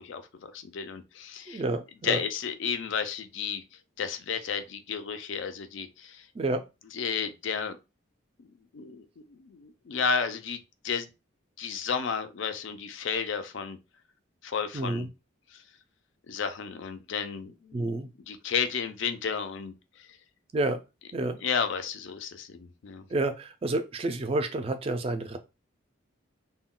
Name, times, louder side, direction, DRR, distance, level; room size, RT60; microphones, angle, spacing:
voice 1, 0.0-1.6 2.0-3.6 4.0-6.3 6.9-7.8 8.4-8.5 8.7-11.1 11.6-13.8 14.4-15.1 16.3-17.9 18.3-19.7 21.4-23.0, left 6 dB, 65° left, 0.4 m, -32 dB
voice 2, 1.5-2.2 6.4-6.6 14.7-15.1 17.7-18.1 20.5-20.8 21.1-21.4 23.1-25.4, right 2 dB, 30° right, 0.3 m, -29 dB
2.2 x 2.1 x 3.7 m
head